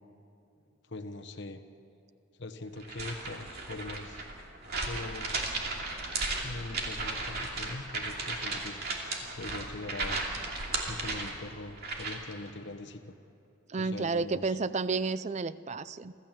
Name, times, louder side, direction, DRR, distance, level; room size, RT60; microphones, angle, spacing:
voice 1, 0.9-1.6 2.4-4.2 4.8-5.5 6.4-8.8 9.2-10.2 10.9-13.2 13.8-14.6, left 2 dB, 55° left, 8 dB, 1.2 m, -42 dB
sound 1, 2.8-12.3, right 3 dB, 50° right, 2.7 m, -35 dB
voice 2, 13.7-16.1, right 4 dB, 35° right, 16 dB, 0.4 m, -31 dB
26.0 x 15.0 x 7.5 m, 2.8 s
head